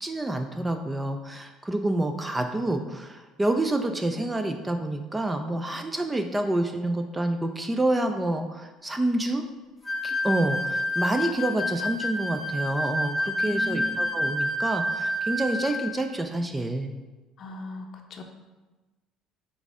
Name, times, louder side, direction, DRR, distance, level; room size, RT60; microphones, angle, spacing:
voice 1, 0.0-9.4 10.0-16.9, right 1 dB, 15° right, 6 dB, 0.3 m, -28 dB
sound 1, 9.8-15.9, left 1 dB, 5° left, 1.0 m, -28 dB
voice 2, 13.4-14.0 17.4-18.2, left 1 dB, 50° left, 4 dB, 0.6 m, -37 dB
3.9 x 3.5 x 3.6 m, 1.2 s
cardioid pair, 115°, 0 cm